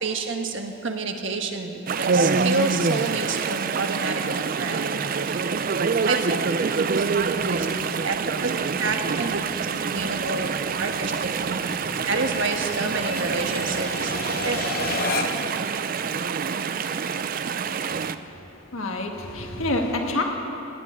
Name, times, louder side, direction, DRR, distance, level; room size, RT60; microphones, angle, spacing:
voice 1, 0.0-5.0 5.2-5.4 6.1-6.4 6.8-9.5 9.9-11.7 12.0-14.1 14.4-14.9, right 3 dB, 65° right, 4 dB, 1.3 m, -29 dB
Chatter / Stream, 1.9-18.1, right 5 dB, 40° right, 0.4 m, -26 dB
sound 1, 5.4-15.6, left 4 dB, 45° left, 0.9 m, -36 dB
voice 2, 18.2-20.2, left 2 dB, 80° left, 2 dB, 1.8 m, -28 dB
18.0 x 8.4 x 9.6 m, 2.9 s
head